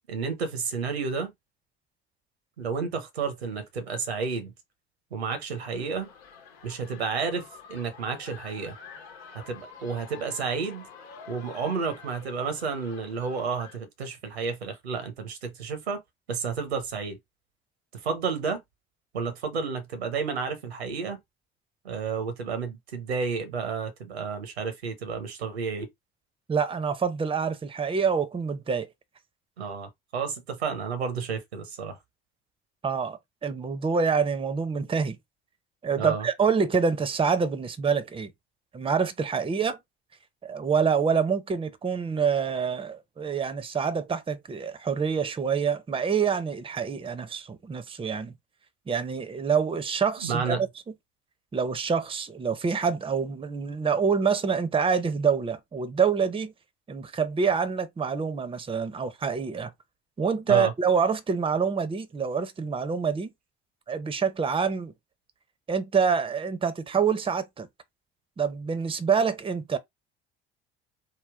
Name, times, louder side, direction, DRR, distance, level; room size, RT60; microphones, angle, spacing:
voice 1, 0.1-1.3 2.6-4.5 5.1-6.1 6.6-8.8 9.5-10.9 11.3-16.0 16.3-17.2 18.0-18.6 19.1-21.2 21.8-25.9 29.6-32.0 36.0-36.3 50.2-50.6 60.5-60.7, right 5 dB, 80° right, 0.9 m, -31 dB
sound 1, 5.5-13.8, left 6 dB, 70° left, 1.1 m, -48 dB
voice 2, 26.5-28.9 32.8-35.2 35.8-38.3 38.7-39.8 40.4-48.3 48.9-50.7 51.5-56.5 56.9-59.7 60.2-63.3 63.9-64.9 65.7-67.7 68.4-69.8, right 6 dB, 15° right, 0.7 m, -26 dB
3.6 x 2.3 x 3.5 m
figure-of-eight pair, 55°, 31 cm